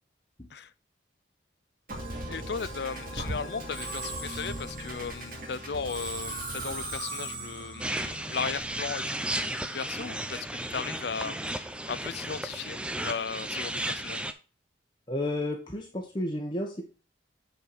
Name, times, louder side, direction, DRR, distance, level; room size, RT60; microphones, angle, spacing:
Musical instrument, 1.9-9.2, right 1 dB, 50° right, 2.5 m, -38 dB
voice 1, 2.3-14.3, left 5 dB, 60° left, 0.5 m, -36 dB
sound 1, 7.8-14.3, right 1 dB, 5° right, 0.5 m, -34 dB
voice 2, 15.1-16.9, left 1 dB, 25° left, 1.1 m, -32 dB
8.5 x 4.8 x 4.7 m
head